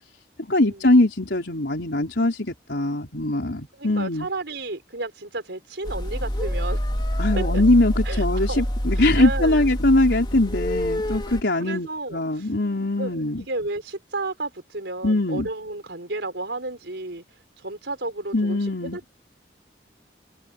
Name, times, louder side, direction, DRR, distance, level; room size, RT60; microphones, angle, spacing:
voice 1, 0.5-4.3 7.2-13.5 15.0-15.5 18.3-19.0, left 2 dB, 80° left, 4.1 m, -22 dB
voice 2, 3.7-6.9 7.4-7.6 8.0-8.6 8.9-9.8 11.6-12.5 13.0-17.2 17.6-19.1, right 2 dB, 85° right, 4.4 m, -32 dB
sound 1, 5.8-11.4, equal, 25° left, 3.2 m, -26 dB
head